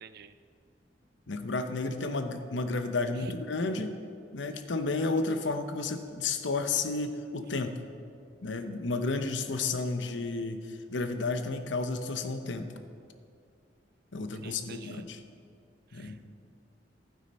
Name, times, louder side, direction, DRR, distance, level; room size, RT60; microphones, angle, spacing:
voice 1, 0.0-0.3 14.4-15.0 15.9-16.2, right 7 dB, 60° right, 12 dB, 0.5 m, -49 dB
voice 2, 1.3-3.9 4.3-7.8 8.4-12.7 14.1-15.2 15.9-16.2, left 3 dB, 85° left, 8 dB, 0.8 m, -32 dB
12.0 x 9.5 x 4.2 m, 2.4 s
head